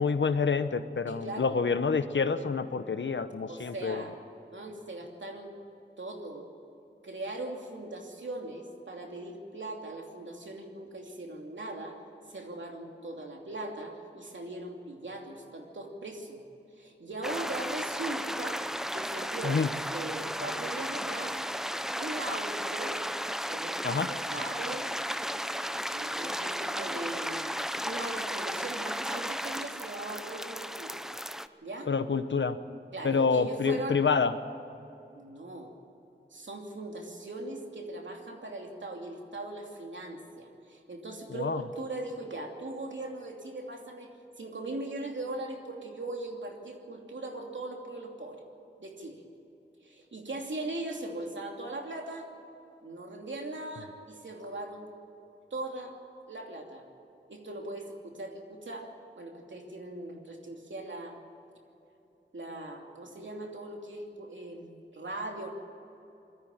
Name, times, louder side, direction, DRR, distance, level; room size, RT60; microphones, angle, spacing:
voice 1, 0.0-4.0 19.4-19.7 23.8-24.1 31.9-32.6 33.0-34.3 41.3-41.6, left 5 dB, 85° left, 11 dB, 1.0 m, -27 dB
voice 2, 1.1-1.5 3.5-4.1 4.5-5.6 6.0-6.4 7.0-12.0 12.3-16.4 16.8-18.6 18.9-21.4 21.9-23.0 23.5-24.9 25.9-27.6 27.8-31.0 31.6-31.9 32.9-34.0 35.1-35.7 36.3-44.1 44.4-48.4 48.8-49.2 49.8-52.3 52.8-54.9 55.5-55.9 56.3-56.8 57.3-58.9 59.1-61.2 62.3-65.5, right 2 dB, 85° right, 1 dB, 2.8 m, -39 dB
sound 1, 17.2-31.5, equal, ahead, 0.8 m, -34 dB
21.0 x 14.0 x 9.0 m, 2.9 s
wide cardioid pair, 45°, 19 cm